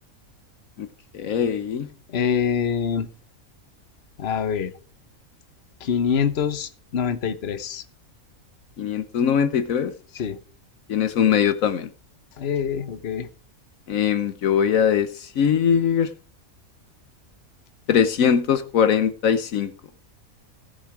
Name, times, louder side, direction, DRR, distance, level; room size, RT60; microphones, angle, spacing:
voice 1, 1.1-1.9 8.8-9.9 10.9-11.9 13.9-16.1 17.9-19.7, left 8 dB, 75° left, 1.2 m, -21 dB
voice 2, 2.1-3.1 4.2-4.7 5.8-7.8 10.2-10.4 12.4-13.3, left 7 dB, 50° left, 1.1 m, -25 dB
16.0 x 7.0 x 4.8 m
omnidirectional pair, 1.5 m